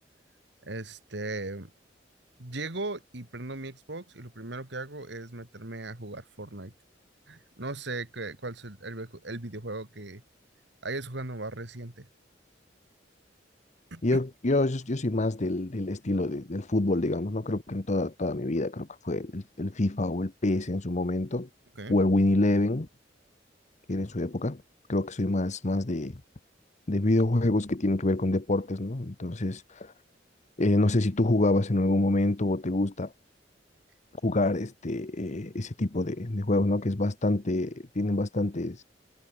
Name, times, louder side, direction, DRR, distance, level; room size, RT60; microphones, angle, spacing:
voice 1, 0.6-1.7 2.4-6.7 7.3-10.2 10.8-12.1 13.9-14.2 21.8-22.0, right 2 dB, 70° right, 2.4 m, -38 dB
voice 2, 14.0-21.5 21.9-22.9 23.9-24.6 24.9-26.2 26.9-29.9 30.6-33.1 34.2-38.8, left 2 dB, 40° left, 1.1 m, -27 dB
head